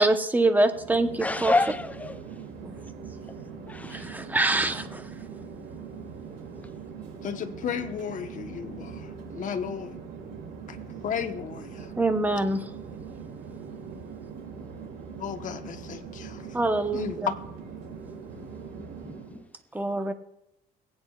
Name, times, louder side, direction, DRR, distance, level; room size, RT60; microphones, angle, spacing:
voice 1, 0.0-1.5 2.6-2.7 3.9-5.1 12.0-12.6 16.5-17.3 19.7-20.1, right 2 dB, 10° right, 1.0 m, -25 dB
Chatter / Fixed-wing aircraft airplane, 0.6-19.5, right 6 dB, 80° right, 2.6 m, -41 dB
voice 2, 1.2-2.2 3.7-4.1 18.3-18.4 18.8-19.4, left 2 dB, 10° left, 0.6 m, -29 dB
voice 3, 7.2-10.0 10.7-10.8 11.0-11.9 15.2-16.5 16.9-17.2, left 7 dB, 50° left, 1.1 m, -34 dB
22.5 x 8.8 x 2.4 m
cardioid pair, 110°, 17 cm